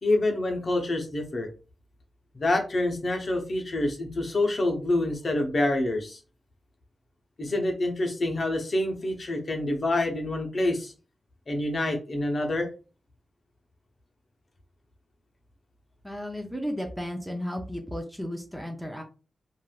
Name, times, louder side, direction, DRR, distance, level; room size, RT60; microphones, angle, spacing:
voice 1, 0.0-1.5 2.3-6.2 7.4-10.9 11.5-12.7, left 2 dB, 45° left, 3 dB, 0.7 m, -27 dB
voice 2, 16.0-19.0, equal, ahead, 2 dB, 0.5 m, -34 dB
3.2 x 2.5 x 2.3 m, 0.34 s
wide cardioid pair, 130°, 0 cm